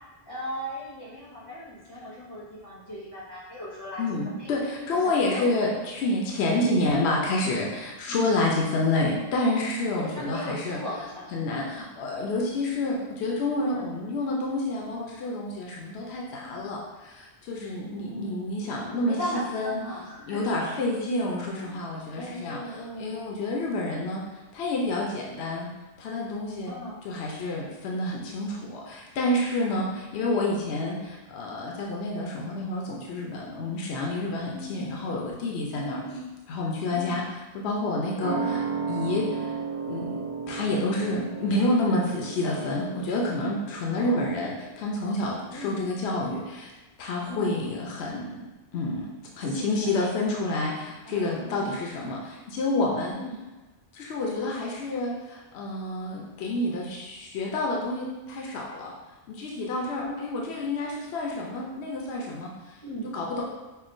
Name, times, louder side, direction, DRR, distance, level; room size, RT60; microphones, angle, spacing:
voice 1, 0.0-4.0 4.4-4.5 5.0-5.6 8.1-8.4 10.0-11.3 13.7-13.9 16.4-16.7 17.7-18.6 19.0-20.8 21.6-21.8 22.1-23.2 26.7-27.0 29.8-30.0 30.5-30.6 34.5-35.0 35.7-36.2 36.9-37.2 38.2-38.5 44.0-44.3 45.5-45.8 47.3-47.6 49.4-50.1 51.0-51.9 53.1-53.4 59.9-60.1 62.8-63.1, equal, 25° left, -7 dB, 0.6 m, -38 dB
voice 2, 4.0-10.8 11.3-19.8 20.2-24.2 24.5-25.7 26.0-36.0 36.5-38.6 38.9-39.5 39.9-46.7 47.0-48.4 48.7-53.2 53.9-58.9 59.3-62.8 63.1-63.4, left 2 dB, 75° left, -2 dB, 0.8 m, -29 dB
sound 1, 38.2-45.3 45.6-45.7, right 5 dB, 80° right, 1.2 m, -34 dB
5.7 x 2.1 x 2.5 m, 1.2 s
omnidirectional pair, 1.1 m